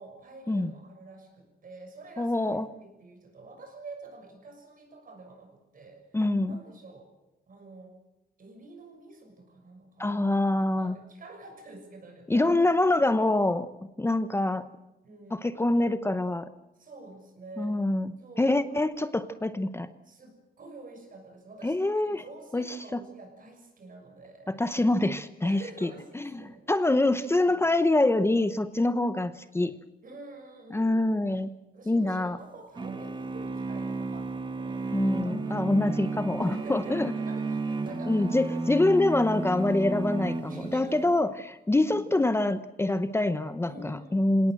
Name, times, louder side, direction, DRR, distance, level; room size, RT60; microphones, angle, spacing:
voice 1, 0.0-6.0 6.5-7.1 7.5-7.9 8.4-10.4 10.8-12.5 15.0-15.4 16.8-17.7 18.2-18.9 20.0-24.6 25.4-26.7 27.5-27.6 30.0-31.0 31.7-34.9 35.2-35.7 36.4-38.5 40.5-41.1 41.9-42.1 43.6-44.3, right 3 dB, 55° right, 4 dB, 6.5 m, -48 dB
voice 2, 2.2-2.7 6.1-6.6 10.0-11.0 12.3-13.7 14.0-14.7 15.3-16.5 17.6-19.9 21.6-22.2 22.5-23.0 24.5-29.7 30.7-31.5 31.9-32.4 34.9-37.1 38.1-44.5, left 2 dB, 15° left, 11 dB, 0.8 m, -25 dB
sound 1, 32.8-41.1, right 3 dB, 30° right, 1.6 m, -33 dB
27.0 x 18.0 x 7.7 m, 0.98 s
wide cardioid pair, 135°, 17 cm